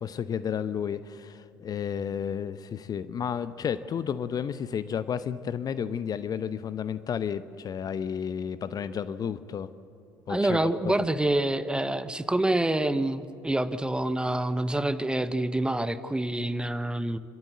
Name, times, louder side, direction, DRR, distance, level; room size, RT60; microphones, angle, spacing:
voice 1, 0.0-9.7 10.3-10.9, left 8 dB, 35° left, 14 dB, 0.7 m, -32 dB
voice 2, 10.3-17.2, right 1 dB, 10° right, 12 dB, 1.0 m, -27 dB
28.0 x 13.0 x 7.9 m, 2.8 s
figure-of-eight pair, 60°, 11 cm